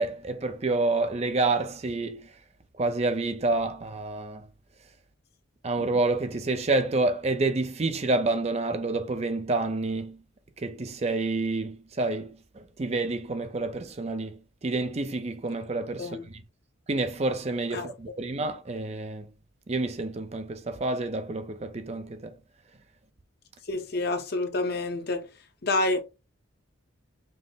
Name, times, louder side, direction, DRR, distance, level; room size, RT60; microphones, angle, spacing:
voice 1, 0.0-2.3 2.8-4.5 5.6-10.2 10.6-16.4 16.9-19.3 19.7-22.3, right 2 dB, 35° right, 0.5 m, -28 dB
voice 2, 23.7-25.2 25.6-26.0, left 2 dB, 50° left, 0.8 m, -28 dB
5.4 x 2.1 x 3.9 m
head